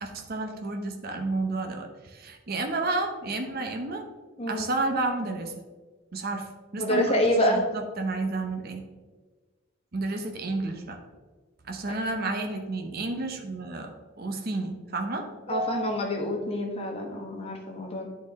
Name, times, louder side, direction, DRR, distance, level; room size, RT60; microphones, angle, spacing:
voice 1, 0.0-4.0 4.5-5.5 6.1-8.8 9.9-11.0 11.7-15.9, right 2 dB, 50° right, 3 dB, 0.8 m, -31 dB
voice 2, 6.8-7.7 11.9-12.0 15.5-18.1, left 1 dB, 30° left, 0 dB, 1.3 m, -27 dB
10.5 x 4.3 x 3.6 m, 1.3 s
head